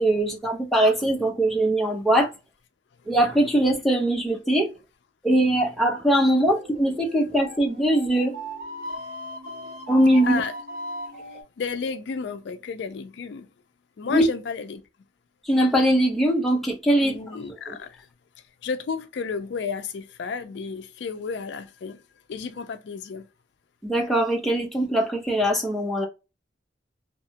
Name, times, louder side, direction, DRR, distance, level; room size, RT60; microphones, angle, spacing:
voice 1, 0.0-2.3 3.1-4.7 5.2-8.4 9.9-10.4 14.1-14.2 15.4-17.2 17.7-17.8 23.8-26.1, right 1 dB, ahead, 0.6 m, -21 dB
sound 1, 6.0-11.4, equal, 55° right, 1.0 m, -38 dB
voice 2, 11.6-13.5 14.0-14.8 17.0-18.1 18.6-22.0 22.3-23.3, left 5 dB, 65° left, 0.4 m, -32 dB
2.8 x 2.2 x 2.7 m
head